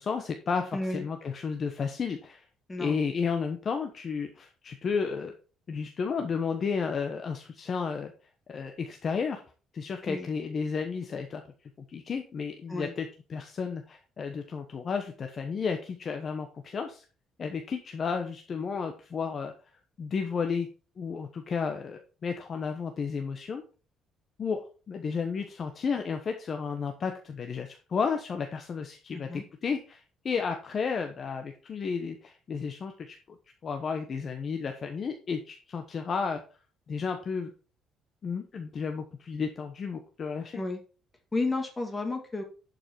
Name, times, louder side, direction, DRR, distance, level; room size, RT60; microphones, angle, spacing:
voice 1, 0.0-2.4 2.8-5.4 5.7-8.1 8.5-9.4 9.7-11.4 11.9-17.0 17.4-19.5 20.0-20.7 21.0-23.6 24.4-33.2 33.6-36.4 36.9-37.5 38.2-40.6, left 5 dB, 35° left, 5 dB, 1.0 m, -32 dB
voice 2, 0.7-1.1 2.7-3.0 10.1-10.3 12.7-12.9 29.1-29.4 40.5-40.8 41.3-42.4, left 2 dB, 15° left, 4 dB, 2.1 m, -32 dB
11.5 x 5.3 x 4.6 m, 0.36 s
cardioid pair, 155°, 0 cm